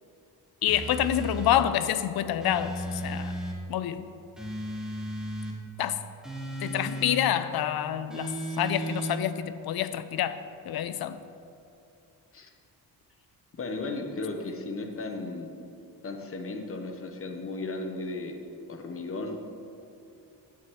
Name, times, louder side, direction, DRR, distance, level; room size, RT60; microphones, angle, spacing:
voice 1, 0.6-3.3 3.7-4.1 5.8-5.9 6.6-10.4 10.7-11.2, left 11 dB, 65° left, 12 dB, 0.5 m, -27 dB
sound 1, 0.7-1.7 2.4-3.6 4.4-5.6 6.2-7.3 8.1-9.2, right 1 dB, ahead, 1.3 m, -35 dB
voice 2, 13.5-15.5 16.0-18.3 18.7-19.4, left 3 dB, 35° left, 4 dB, 1.0 m, -35 dB
9.3 x 8.2 x 3.1 m, 2.7 s
cardioid pair, 95°, 40 cm